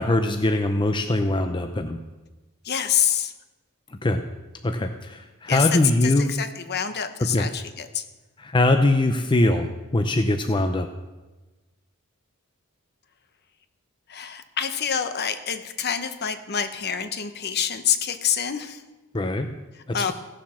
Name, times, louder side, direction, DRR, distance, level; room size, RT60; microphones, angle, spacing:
voice 1, 0.0-2.0 4.0-4.2 4.6-6.3 7.3-7.5 8.4-10.9 19.1-19.5 19.9-20.1, left 2 dB, 20° left, 6 dB, 0.6 m, -22 dB
voice 2, 2.6-3.3 5.5-8.0 14.1-18.8 19.7-20.1, left 8 dB, 50° left, 10 dB, 0.9 m, -27 dB
16.0 x 7.3 x 6.3 m, 1.2 s
head